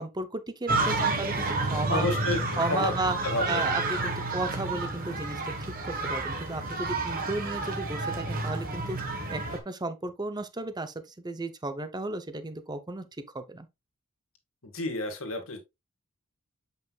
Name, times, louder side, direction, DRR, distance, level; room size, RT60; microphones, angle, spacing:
voice 1, 0.0-2.1 2.6-3.2 3.5-5.5 5.8-13.1 13.3-13.7, right 2 dB, 20° right, 0.7 m, -34 dB
sound 1, 0.7-9.6, right 3 dB, 40° right, 1.2 m, -30 dB
voice 2, 1.9-2.4 2.7-2.9 3.2-3.7 4.0-4.2 14.6-15.6, left 2 dB, 65° left, 1.9 m, -30 dB
7.8 x 5.4 x 2.4 m
head